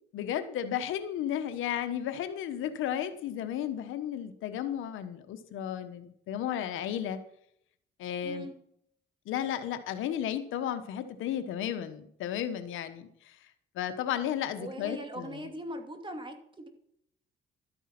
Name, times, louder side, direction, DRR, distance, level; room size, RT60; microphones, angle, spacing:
voice 1, 0.1-7.2 8.0-8.5 9.3-13.4 13.7-15.5, left 10 dB, 85° left, 10 dB, 1.2 m, -34 dB
voice 2, 8.2-8.5 14.6-16.7, right 1 dB, 25° right, 5 dB, 2.5 m, -40 dB
12.5 x 9.2 x 6.0 m, 0.71 s
cardioid pair, 90°, 20 cm